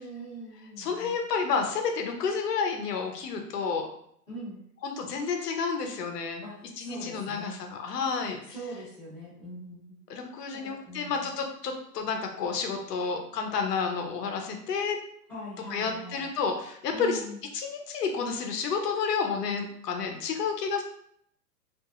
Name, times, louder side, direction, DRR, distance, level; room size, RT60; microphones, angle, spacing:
voice 1, 0.0-1.2 4.3-4.6 6.4-7.6 8.5-9.9 10.5-11.3 15.3-16.3 16.9-17.4, right 1 dB, 5° left, -12 dB, 0.6 m, -42 dB
voice 2, 0.8-3.9 4.8-6.4 6.8-8.4 10.1-15.0 15.7-17.2 17.5-20.8, left 5 dB, 90° left, 4 dB, 0.8 m, -30 dB
2.8 x 2.6 x 2.4 m, 0.67 s
hypercardioid pair, 160°, 47 cm